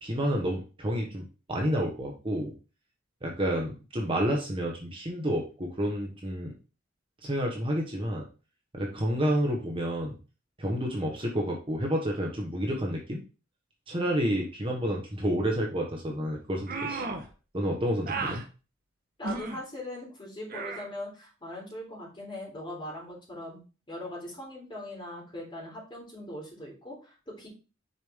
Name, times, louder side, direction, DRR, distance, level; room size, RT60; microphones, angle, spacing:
voice 1, 0.0-2.5 3.2-6.5 7.2-8.3 8.7-10.2 10.6-13.2 13.9-17.0 17.5-18.4, equal, 25° right, 0 dB, 1.1 m, -29 dB
sound 1, 16.7-17.3 18.1-18.4 19.2-19.6 20.5-20.9, right 3 dB, 45° right, 1.0 m, -34 dB
voice 2, 18.1-18.4 19.2-23.6 23.9-27.5, left 1 dB, 25° left, -3 dB, 3.5 m, -40 dB
6.6 x 5.2 x 3.6 m, 0.34 s
head